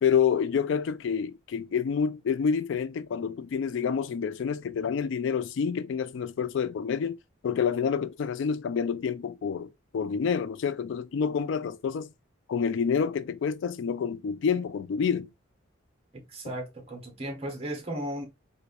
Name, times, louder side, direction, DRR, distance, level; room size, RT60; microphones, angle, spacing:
voice 1, 0.0-7.2 7.4-12.1 12.5-15.3, left 6 dB, 60° left, 0.3 m, -28 dB
voice 2, 16.1-18.3, right 1 dB, 30° right, 0.9 m, -35 dB
4.0 x 2.5 x 2.3 m
head